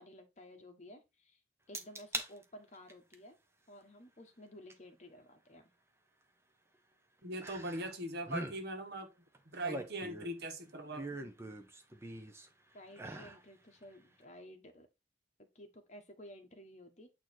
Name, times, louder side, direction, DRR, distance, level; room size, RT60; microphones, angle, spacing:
voice 1, 0.0-1.4 1.7-3.4 3.7-5.7 12.7-14.9 15.5-17.1, left 1 dB, 40° left, 1.2 m, -54 dB
sound 1, 1.7-2.3 2.7-3.1 4.7-4.8 7.4-8.0 8.2-8.6 9.3-10.4 10.9-12.5 12.9-13.4 13.8-13.9, right 2 dB, 15° right, 0.8 m, -42 dB
voice 2, 7.2-9.1 9.5-11.3, right 1 dB, 65° right, 1.4 m, -40 dB
8.7 x 3.0 x 4.4 m
head